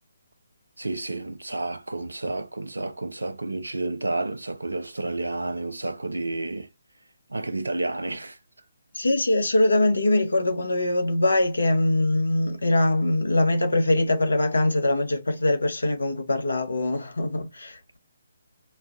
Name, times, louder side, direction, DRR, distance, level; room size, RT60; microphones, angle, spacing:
voice 1, 0.8-6.7 7.3-8.4, right 2 dB, 80° right, 0.6 m, -30 dB
voice 2, 8.9-18.0, left 2 dB, 70° left, 1.1 m, -23 dB
5.4 x 2.4 x 2.5 m
figure-of-eight pair, 140°, 0 cm